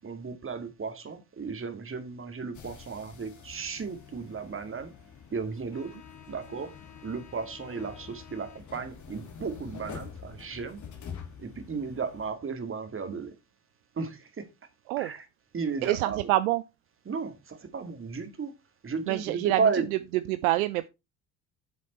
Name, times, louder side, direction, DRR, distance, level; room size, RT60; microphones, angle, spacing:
voice 1, 0.0-4.9 5.3-6.0 6.3-6.7 7.0-10.8 11.4-13.3 14.0-14.5 15.0-15.2 15.5-16.2 17.1-18.5 18.8-19.9, right 5 dB, 30° right, 2.2 m, -34 dB
sound 1, 2.5-12.3, left 7 dB, 40° left, 2.1 m, -46 dB
voice 2, 15.8-16.6 19.1-20.9, right 17 dB, 65° right, 0.6 m, -27 dB
7.4 x 7.2 x 4.4 m
figure-of-eight pair, 55°, 45 cm